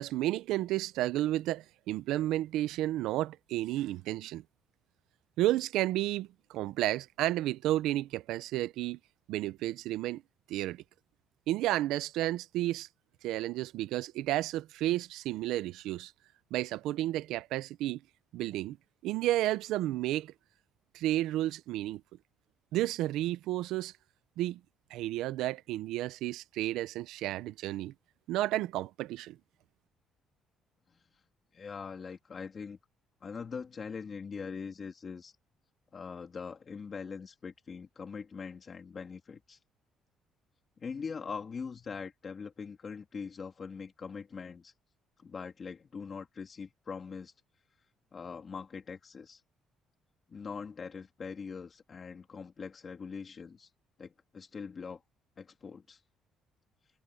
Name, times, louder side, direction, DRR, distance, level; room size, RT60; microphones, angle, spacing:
voice 1, 0.0-4.4 5.4-9.0 9.3-10.2 10.5-10.8 11.5-12.9 13.2-16.1 16.5-18.0 18.3-18.8 19.0-20.3 20.9-22.0 22.7-23.9 24.4-24.6 24.9-27.9 28.3-29.4, right 15 dB, 90° right, 0.6 m, -32 dB
voice 2, 31.5-32.8 33.2-35.3 35.9-39.6 40.8-44.7 45.2-47.3 48.1-49.4 50.3-53.7 54.0-55.0 55.4-56.0, left 5 dB, 30° left, 3.1 m, -42 dB
cardioid pair, 165°, 0 cm